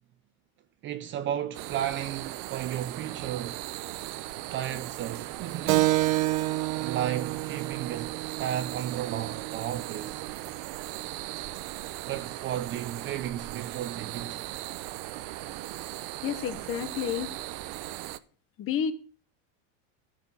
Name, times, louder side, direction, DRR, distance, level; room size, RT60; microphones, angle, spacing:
voice 1, 0.8-3.6 4.5-6.0 6.8-10.3 12.0-14.4, right 11 dB, 30° right, 0.4 m, -34 dB
sound 1, 1.5-18.2, right 16 dB, 60° right, 0.7 m, -38 dB
Keyboard (musical), 5.7-10.8, right 18 dB, 85° right, 0.8 m, -30 dB
voice 2, 16.2-17.4 18.6-18.9, left 8 dB, 35° left, 1.0 m, -30 dB
13.0 x 4.7 x 7.0 m
cardioid pair, 150°, 39 cm